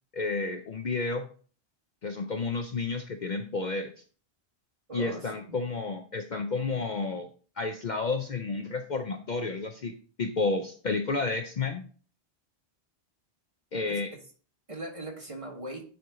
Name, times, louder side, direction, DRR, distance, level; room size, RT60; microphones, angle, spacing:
voice 1, 0.1-1.3 2.0-3.9 4.9-7.3 7.6-9.9 10.2-11.8 13.7-14.1, left 3 dB, 50° left, 6 dB, 0.7 m, -31 dB
voice 2, 4.9-5.5 7.1-7.2 13.7-14.0 14.7-15.8, right 1 dB, 30° right, 1 dB, 1.7 m, -40 dB
9.6 x 4.4 x 3.7 m, 0.41 s
omnidirectional pair, 1.1 m